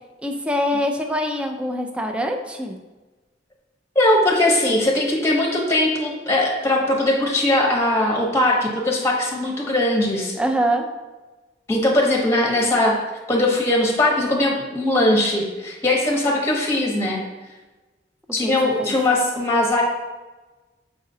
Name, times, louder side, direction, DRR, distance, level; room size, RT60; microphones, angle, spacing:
voice 1, 0.2-2.8 10.4-10.9 18.4-18.5 18.8-18.9, equal, 5° right, 3 dB, 0.4 m, -24 dB
voice 2, 3.9-10.3 11.7-13.0 13.3-17.2 18.3-19.8, left 1 dB, 15° left, -1 dB, 0.9 m, -20 dB
7.6 x 4.8 x 2.7 m, 1.2 s
head